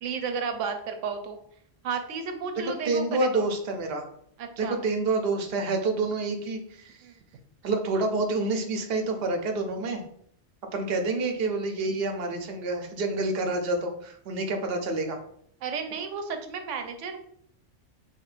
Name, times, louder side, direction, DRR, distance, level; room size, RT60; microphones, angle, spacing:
voice 1, 0.0-1.4 1.8-3.5 4.4-4.8 7.0-7.2 15.6-17.2, right 5 dB, 85° right, 6 dB, 1.0 m, -33 dB
voice 2, 2.8-4.1 4.6-7.0 7.6-10.0 10.7-15.2, right 2 dB, 60° right, 4 dB, 0.8 m, -28 dB
4.4 x 3.3 x 2.4 m, 0.66 s
omnidirectional pair, 1.3 m